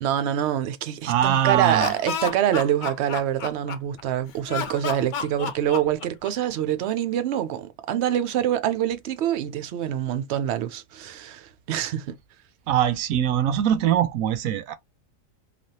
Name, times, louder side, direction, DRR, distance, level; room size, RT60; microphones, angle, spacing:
voice 1, 0.0-12.2, right 10 dB, 65° right, 0.7 m, -25 dB
voice 2, 1.1-1.9 12.7-14.7, right 10 dB, 85° right, 1.0 m, -22 dB
Laughter, 1.5-4.0 4.5-6.5, left 6 dB, 80° left, 0.4 m, -31 dB
3.4 x 2.3 x 2.7 m
omnidirectional pair, 1.4 m